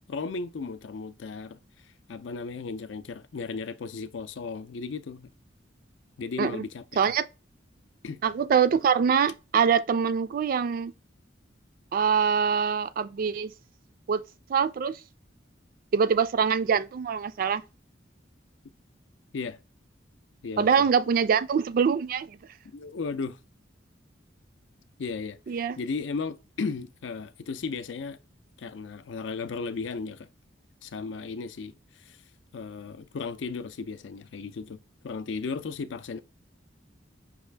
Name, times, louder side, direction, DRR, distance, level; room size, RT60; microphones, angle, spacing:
voice 1, 0.0-1.6 2.1-5.3 6.2-6.8 8.0-8.2 19.3-19.6 20.4-20.9 22.7-23.4 25.0-25.4 25.8-28.2 28.6-30.3 30.8-32.2 32.5-34.8 35.0-36.2, left 4 dB, 75° left, 0.5 m, -35 dB
voice 2, 8.2-10.9 11.9-13.5 14.1-14.2 14.5-15.0 15.9-17.6 20.6-22.4 25.5-25.8, right 6 dB, 50° right, 0.3 m, -24 dB
5.4 x 2.4 x 3.3 m
head